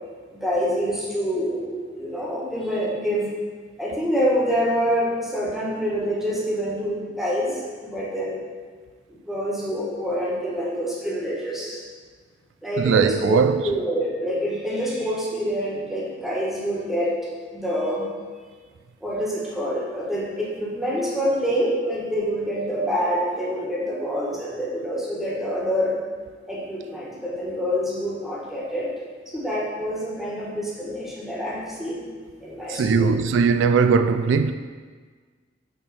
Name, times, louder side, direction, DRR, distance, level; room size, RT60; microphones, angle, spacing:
voice 1, 0.3-3.3 3.8-8.4 9.2-11.8 12.6-17.1 17.5-18.1 19.0-26.0 26.5-28.9 29.3-32.1 32.4-33.1, equal, ahead, 1.5 m, -26 dB
voice 2, 12.8-13.6 32.7-34.5, right 5 dB, 85° right, 0.3 m, -19 dB
8.5 x 3.5 x 4.4 m
head